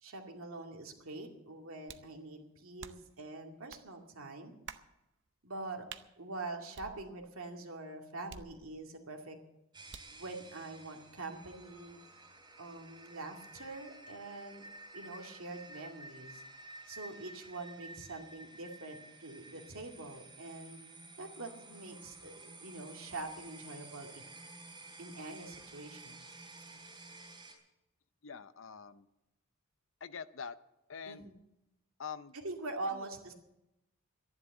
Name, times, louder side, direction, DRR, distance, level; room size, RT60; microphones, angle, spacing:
voice 1, 0.0-4.5 5.4-5.9 6.2-9.4 10.1-12.0 12.6-16.4 16.9-20.8 21.2-24.2 25.0-26.2 31.1-31.3 32.3-33.3, right 2 dB, 75° right, 2 dB, 2.2 m, -44 dB
sound 1, 1.9-2.2 2.8-3.2 3.7-3.9 4.7-4.9 5.9-6.1 6.7-7.4 8.3-9.0 9.9-10.2, right 7 dB, 55° right, 0.7 m, -50 dB
sound 2, 9.7-27.5, right 2 dB, 20° right, 3.2 m, -52 dB
voice 2, 28.2-29.0 30.0-30.6 30.9-31.2 32.0-32.3, left 6 dB, 60° left, 13 dB, 0.6 m, -44 dB
12.5 x 11.0 x 7.8 m, 0.89 s
head